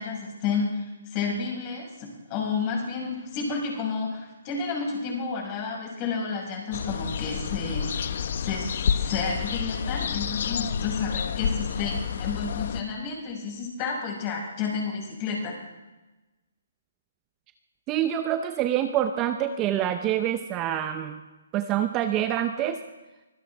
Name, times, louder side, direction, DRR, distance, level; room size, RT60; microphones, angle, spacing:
voice 1, 0.0-8.1 8.4-15.6, left 5 dB, 30° left, -1 dB, 5.8 m, -31 dB
sound 1, 6.7-12.8, left 7 dB, 55° left, 0.9 m, -29 dB
voice 2, 17.9-21.2 21.5-22.8, right 11 dB, 20° right, 7 dB, 0.8 m, -26 dB
24.5 x 16.5 x 3.6 m, 1.1 s
hypercardioid pair, 155°, 0 cm